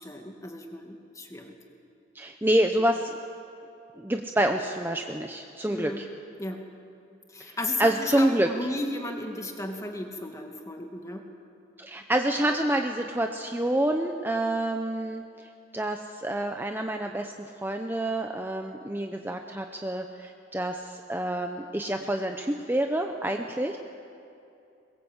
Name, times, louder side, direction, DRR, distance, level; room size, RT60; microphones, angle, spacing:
voice 1, 0.0-1.5 5.7-6.1 6.4-6.6 7.3-11.3, left 1 dB, 15° left, 3 dB, 2.2 m, -35 dB
voice 2, 2.1-3.1 4.0-6.0 7.8-8.5 11.8-15.2 15.7-23.8, right 1 dB, 10° right, 4 dB, 0.9 m, -27 dB
22.5 x 21.0 x 8.1 m, 2.7 s
head